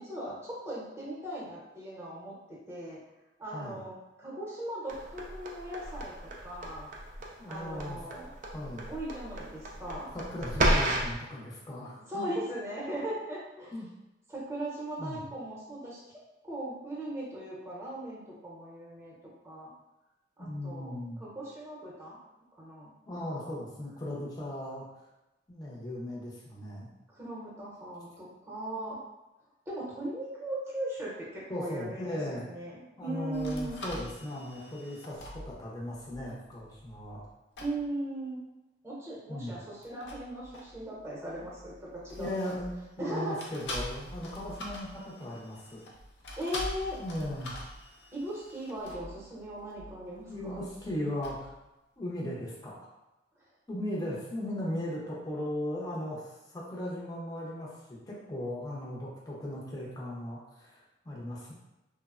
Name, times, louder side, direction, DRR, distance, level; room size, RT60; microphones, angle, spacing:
voice 1, 0.0-3.0 3.4-6.9 7.5-8.3 8.9-10.1 12.1-13.7 14.3-16.0 16.4-19.1 19.4-19.7 20.4-22.2 22.6-23.5 27.1-29.0 29.7-33.8 37.6-38.4 38.8-42.5 43.0-43.4 46.4-47.0 48.1-50.6, right 1 dB, 15° right, -6 dB, 0.7 m, -38 dB
sound 1, 4.9-11.2, right 1 dB, 45° right, 0.4 m, -32 dB
voice 2, 7.4-8.0 8.5-8.9 10.1-12.3 13.7-13.9 15.0-15.2 20.4-21.2 23.1-24.8 25.5-26.9 31.5-32.4 33.0-37.2 39.3-39.5 42.2-45.8 47.0-47.5 50.3-51.5 52.0-52.9 53.7-60.8 61.0-61.5, left 1 dB, 20° left, -5 dB, 0.6 m, -37 dB
sound 2, 33.3-37.3 37.6-37.8 39.7-43.0 43.4-51.6, left 1 dB, 70° left, 0.5 m, -44 dB
3.1 x 2.0 x 2.4 m, 1.0 s
head